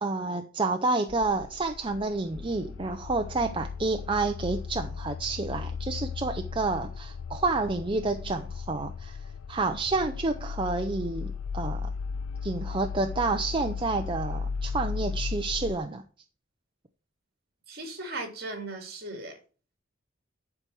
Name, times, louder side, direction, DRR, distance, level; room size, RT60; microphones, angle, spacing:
voice 1, 0.0-9.2 9.5-11.9 12.4-16.0, right 3 dB, 25° right, 0.6 m, -29 dB
sound 1, 1.1-15.8, left 5 dB, 85° left, 0.4 m, -36 dB
voice 2, 17.7-19.4, right 2 dB, 50° right, 3.0 m, -37 dB
11.5 x 4.5 x 6.2 m
head